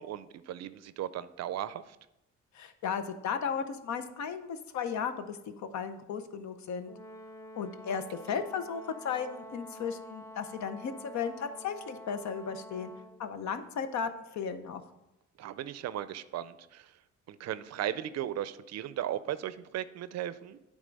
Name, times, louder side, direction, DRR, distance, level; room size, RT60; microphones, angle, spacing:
voice 1, 0.0-2.0 8.3-8.4 15.4-16.9 17.3-20.6, right 11 dB, 60° right, 15 dB, 0.4 m, -37 dB
voice 2, 2.5-6.9 7.6-12.9 13.2-14.8, left 6 dB, 65° left, 10 dB, 0.7 m, -35 dB
Brass instrument, 6.9-13.3, equal, 10° left, 0.5 m, -48 dB
8.9 x 3.6 x 5.2 m, 0.93 s
cardioid pair, 90°, 30 cm